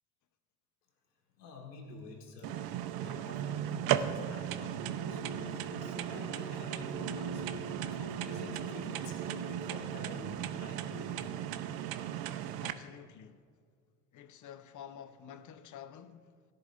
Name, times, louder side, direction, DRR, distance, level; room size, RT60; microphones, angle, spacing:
voice 1, 1.4-2.6 2.9-11.5, left 2 dB, 85° left, 1.8 m, -49 dB
sound 1, 2.4-12.7, right 11 dB, 50° right, 0.7 m, -36 dB
sound 2, 4.8-9.7, right 1 dB, 70° right, 2.9 m, -45 dB
voice 2, 12.6-13.5 14.1-16.4, left 9 dB, 40° left, 0.8 m, -50 dB
16.5 x 11.0 x 2.5 m
hypercardioid pair, 65°, 46 cm